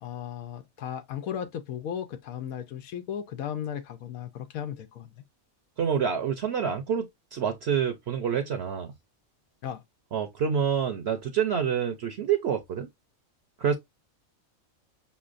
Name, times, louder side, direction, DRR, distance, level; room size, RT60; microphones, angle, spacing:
voice 1, 0.0-5.1 9.6-9.8, left 9 dB, 85° left, 1.1 m, -35 dB
voice 2, 5.8-8.9 10.1-12.9 13.6-13.8, right 7 dB, 60° right, 0.8 m, -27 dB
5.6 x 3.1 x 2.5 m
omnidirectional pair, 1.4 m